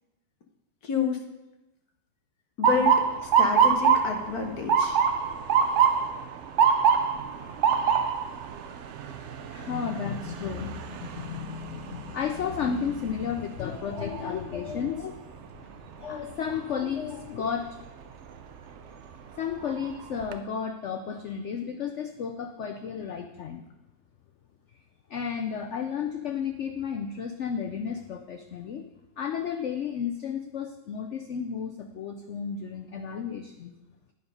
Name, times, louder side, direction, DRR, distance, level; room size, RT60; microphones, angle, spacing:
voice 1, 0.8-1.2 2.6-5.0, left 6 dB, 60° left, 3 dB, 1.4 m, -29 dB
Motor vehicle (road) / Siren, 2.6-14.5 15.0-15.4 16.2-16.5 18.4-18.6 19.1-19.2 19.6-20.3, right 7 dB, 75° right, 0.6 m, -25 dB
voice 2, 9.5-15.2 16.0-17.8 19.4-23.6 25.1-28.8 29.2-33.7, left 7 dB, 85° left, 5 dB, 0.6 m, -33 dB
9.6 x 5.1 x 5.4 m, 0.98 s
omnidirectional pair, 2.0 m